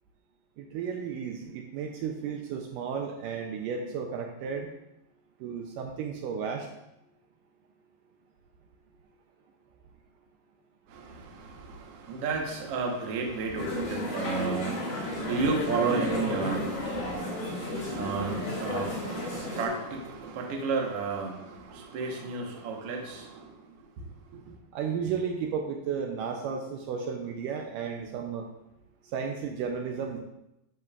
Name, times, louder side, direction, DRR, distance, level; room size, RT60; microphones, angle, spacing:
voice 1, 0.6-4.7 5.4-6.7 24.7-28.5 29.0-30.2, right 6 dB, 80° right, 2.1 m, -33 dB
voice 2, 10.9-23.6 24.0-24.4, right 4 dB, 60° right, 1.7 m, -32 dB
sound 1, 13.6-19.7, left 2 dB, 80° left, 4.9 m, -33 dB
10.5 x 7.5 x 2.4 m
omnidirectional pair, 4.0 m